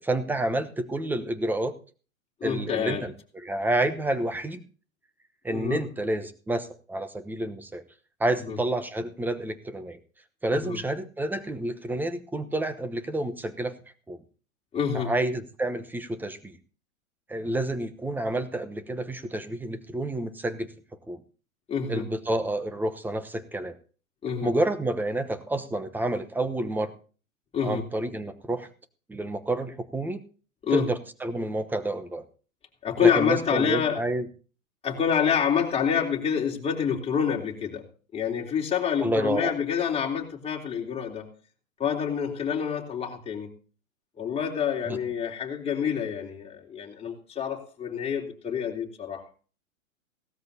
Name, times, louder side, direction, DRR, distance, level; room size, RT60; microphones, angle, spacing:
voice 1, 0.0-1.7 2.4-3.1 3.4-4.6 5.4-7.8 8.2-10.0 10.4-13.7 14.1-14.2 14.9-16.6 17.3-20.7 21.1-21.2 21.9-23.7 24.4-26.9 27.6-28.7 29.1-30.2 30.7-32.2 33.0-34.3 39.0-39.5 44.9-45.0, right 1 dB, 5° right, 10 dB, 1.0 m, -29 dB
voice 2, 2.4-3.1 5.5-5.8 8.4-8.6 10.5-10.8 14.7-15.1 21.7-22.1 24.2-24.5 27.5-27.8 30.6-30.9 32.8-34.0 34.8-37.8 38.1-41.3 41.8-43.5 44.2-49.2, left 7 dB, 15° left, -1 dB, 3.4 m, -27 dB
18.0 x 13.0 x 2.8 m, 0.39 s
hypercardioid pair, 125°, 40 cm